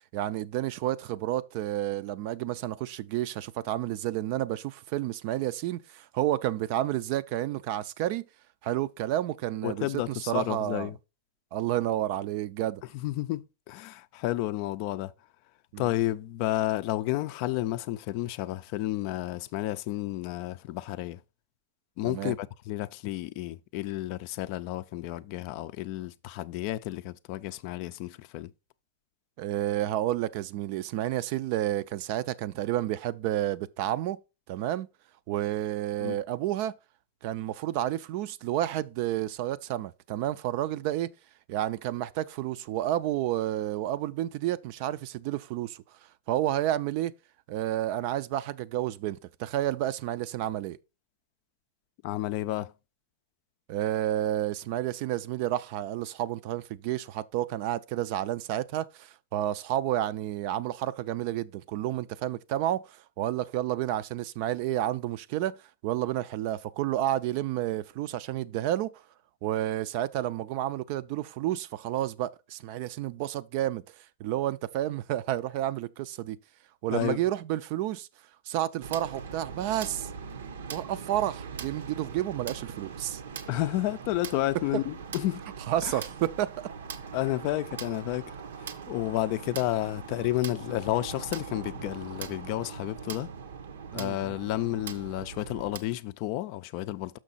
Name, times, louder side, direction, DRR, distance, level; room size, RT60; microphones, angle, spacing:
voice 1, 0.1-8.2 8.6-10.9 11.5-12.8 15.7-15.8 22.0-22.3 29.4-34.2 34.5-34.9 35.3-36.7 37.2-41.1 41.5-45.8 46.3-47.1 47.5-50.8 53.7-65.6 65.8-68.9 69.4-73.8 74.2-76.4 76.8-78.1 78.5-80.1 80.7-83.2 85.7-86.5 93.9-94.2, right 13 dB, 45° right, 0.4 m, -30 dB
voice 2, 9.6-11.0 12.9-15.1 15.8-21.2 22.0-28.5 36.0-36.2 52.0-52.7 76.9-77.2 83.5-85.4 85.8-86.0 87.1-88.3 88.6-93.3 93.9-97.2, left 15 dB, 45° left, 0.4 m, -31 dB
sound 1, 78.8-95.8, right 6 dB, 85° right, 0.9 m, -41 dB
6.3 x 5.9 x 4.1 m
supercardioid pair, 145°, 0 cm